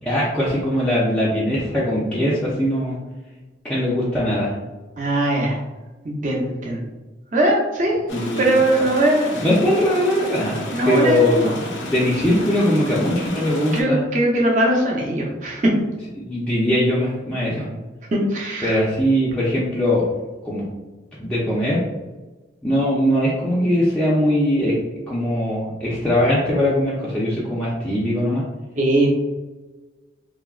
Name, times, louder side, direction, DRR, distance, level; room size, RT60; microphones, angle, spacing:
voice 1, 0.0-3.0 3.6-4.5 8.1-8.6 9.3-10.6 10.8-14.0 16.2-17.7 18.6-20.1 20.4-20.6 21.2-21.8 22.6-24.8 25.1-28.4, equal, 5° left, -8 dB, 0.4 m, -20 dB
voice 2, 5.0-5.6 6.0-6.8 7.3-8.0 8.4-9.3 10.7-11.5 13.7-15.7 18.1-18.7 28.8-29.1, right 1 dB, 40° right, -2 dB, 0.6 m, -20 dB
sound 1, 8.1-13.8, left 2 dB, 90° left, 0.5 m, -32 dB
3.4 x 2.1 x 2.3 m, 1.2 s
head